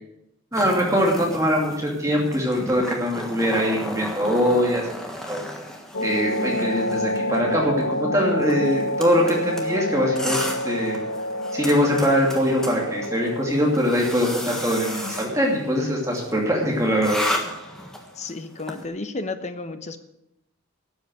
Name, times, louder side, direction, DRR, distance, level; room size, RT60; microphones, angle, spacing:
skate fx, 0.5-18.8, equal, 5° left, 1.4 m, -34 dB
voice 1, 0.5-4.9 5.3-5.4 6.0-10.4 10.6-11.0 11.5-17.2, equal, 15° right, -2 dB, 2.6 m, -22 dB
sound 1, 5.9-17.5, left 1 dB, 65° left, 1.0 m, -29 dB
voice 2, 18.2-20.0, left 3 dB, 30° left, 9 dB, 0.9 m, -32 dB
12.5 x 8.2 x 8.0 m, 0.84 s
head